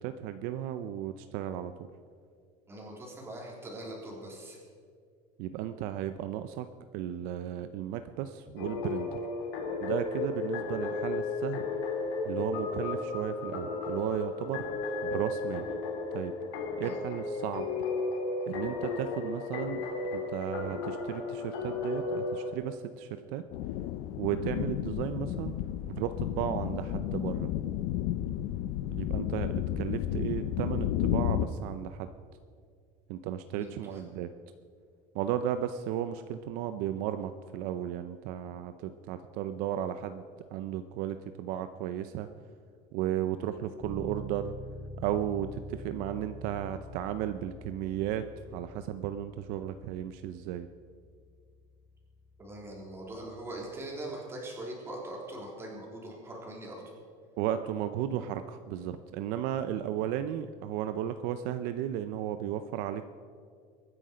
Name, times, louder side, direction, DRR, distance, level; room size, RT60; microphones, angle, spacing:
voice 1, 0.0-1.7 5.4-6.7 6.9-9.2 9.8-11.6 12.2-14.6 15.0-15.6 16.1-16.3 16.8-17.7 18.5-19.8 20.1-23.4 24.2-25.5 25.9-27.5 28.9-32.1 33.1-34.3 35.1-40.2 40.5-42.3 42.9-44.5 45.0-48.3 48.5-50.7 57.4-63.0, right 11 dB, 65° right, 10 dB, 0.6 m, -34 dB
voice 2, 2.7-4.6 16.8-17.0 33.5-34.0 52.4-56.9, right 1 dB, 15° right, -2 dB, 3.5 m, -42 dB
sound 1, 8.6-22.5, left 3 dB, 85° left, 3.2 m, -34 dB
sound 2, 23.5-31.5, left 12 dB, 65° left, 0.7 m, -32 dB
Bass guitar, 43.8-53.5, left 1 dB, 15° left, 3.8 m, -47 dB
23.0 x 9.9 x 5.1 m, 2.1 s
cardioid pair, 160°, 16 cm